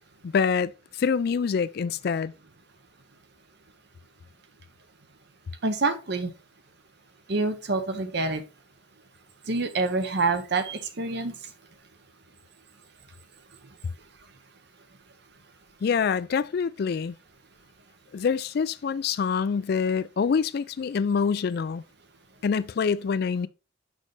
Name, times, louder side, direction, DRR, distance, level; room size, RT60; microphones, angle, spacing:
voice 1, 0.2-0.7 1.0-2.3 15.8-17.1 18.1-21.8 22.4-23.5, left 6 dB, 50° left, 0.3 m, -25 dB
voice 2, 5.6-6.3 7.3-8.4 9.5-11.3, right 3 dB, 55° right, 0.8 m, -26 dB
6.3 x 5.2 x 3.2 m
head